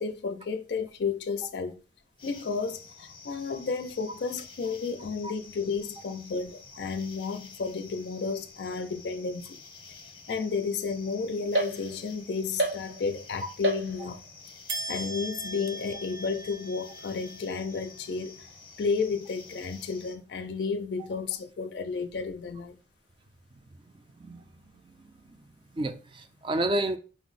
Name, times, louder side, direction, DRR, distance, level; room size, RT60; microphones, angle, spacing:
voice 1, 0.0-1.8 2.2-9.4 10.3-14.2 14.9-18.4 18.8-22.8, left 5 dB, 65° left, 0.4 m, -32 dB
sound 1, 2.2-20.2, left 4 dB, 25° left, 0.7 m, -50 dB
sound 2, 11.5-12.2 12.6-13.2 13.6-14.3 14.7-18.1, right 1 dB, 75° right, 1.0 m, -34 dB
voice 2, 24.2-25.4 25.7-27.0, right 1 dB, 30° right, 0.4 m, -32 dB
4.9 x 2.0 x 3.9 m
head